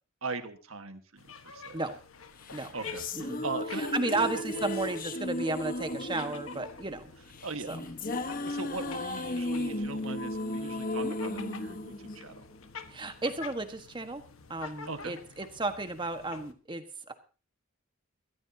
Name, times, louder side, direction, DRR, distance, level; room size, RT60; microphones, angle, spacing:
voice 1, 0.2-1.8 2.7-3.1 3.4-4.4 7.4-7.8 8.4-12.4 14.6-15.1, right 3 dB, 85° right, 8 dB, 1.6 m, -39 dB
sound 1, 1.2-16.5, left 5 dB, 80° left, 1.4 m, -49 dB
sound 2, 2.5-12.9, left 1 dB, 40° left, 1.3 m, -35 dB
voice 2, 3.7-7.1 7.7-7.8 11.0-11.2 12.9-14.2 14.5-17.1, right 2 dB, 25° right, 7 dB, 1.4 m, -33 dB
22.0 x 14.5 x 2.8 m, 0.35 s
head